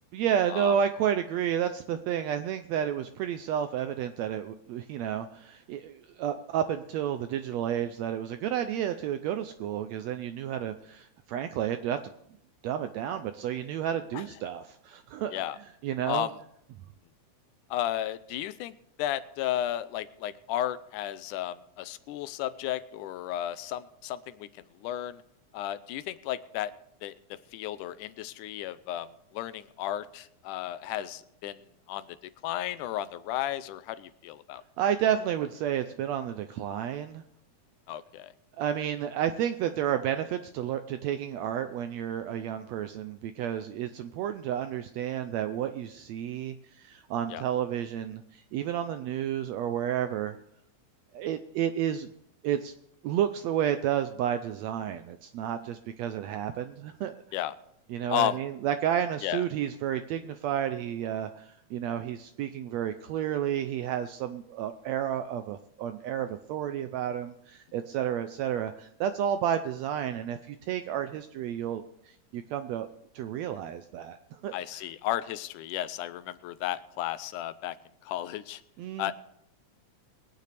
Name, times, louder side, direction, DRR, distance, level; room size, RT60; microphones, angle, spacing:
voice 1, 0.1-12.0 12.6-15.4 15.8-16.3 34.8-37.2 38.6-50.4 51.1-52.1 52.4-52.7 53.0-57.1 57.9-72.9 73.1-74.9 78.8-79.1, right 9 dB, 80° right, 9 dB, 1.6 m, -31 dB
voice 2, 16.1-16.4 17.7-18.7 19.0-24.5 24.8-25.2 25.5-26.7 27.0-27.1 27.5-29.1 29.3-31.6 31.9-32.2 32.4-34.6 37.9-38.3 47.3-47.4 57.3-57.6 58.1-58.4 59.2-59.4 74.5-77.8 78.0-78.6 79.0-79.1, left 12 dB, 85° left, 13 dB, 2.1 m, -33 dB
22.5 x 9.3 x 3.3 m, 0.75 s
omnidirectional pair, 3.6 m